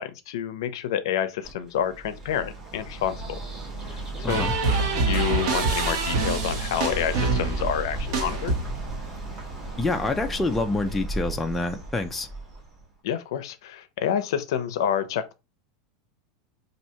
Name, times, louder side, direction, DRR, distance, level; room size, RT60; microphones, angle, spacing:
voice 1, 0.0-3.4 4.3-4.5 5.0-8.5 13.0-15.4, left 9 dB, 70° left, 0.5 m, -28 dB
Bird, 1.4-12.9, right 2 dB, 15° right, 1.2 m, -34 dB
sound 1, 4.3-9.0, right 3 dB, 60° right, 1.2 m, -26 dB
voice 2, 9.8-12.3, left 2 dB, 5° left, 0.3 m, -27 dB
2.8 x 2.7 x 4.3 m
supercardioid pair, 170°, 3 cm